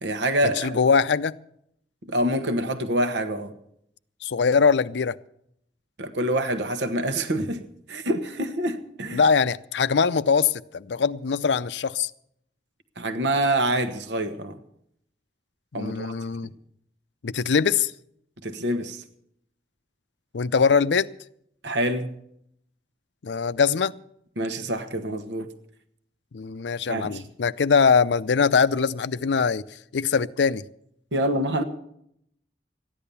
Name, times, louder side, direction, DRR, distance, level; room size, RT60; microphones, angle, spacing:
voice 1, 0.0-0.8 2.1-3.5 6.0-7.6 7.9-9.2 13.0-14.6 15.7-16.1 18.4-19.0 21.6-22.1 24.4-25.5 26.9-27.2 31.1-31.6, right 1 dB, 85° right, 1.2 m, -26 dB
voice 2, 0.6-1.4 4.2-5.2 9.1-12.1 15.7-16.5 17.2-17.9 20.3-21.1 23.2-23.9 26.3-29.6 29.9-30.6, left 5 dB, 80° left, 0.5 m, -22 dB
14.5 x 10.5 x 6.9 m
head